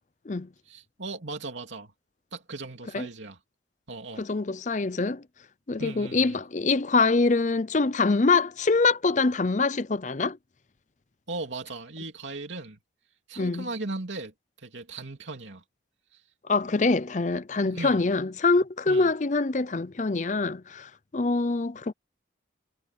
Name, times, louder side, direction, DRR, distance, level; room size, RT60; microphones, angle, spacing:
voice 1, 0.6-1.9 2.3-3.4 3.9-4.3 5.8-6.4 11.3-12.8 13.3-14.3 14.6-15.6 16.1-16.2 17.7-18.0 18.9-19.1, right 3 dB, 75° right, 2.7 m, -37 dB
voice 2, 4.2-5.2 5.7-10.4 13.4-13.7 16.5-21.9, left 3 dB, 40° left, 0.6 m, -24 dB
head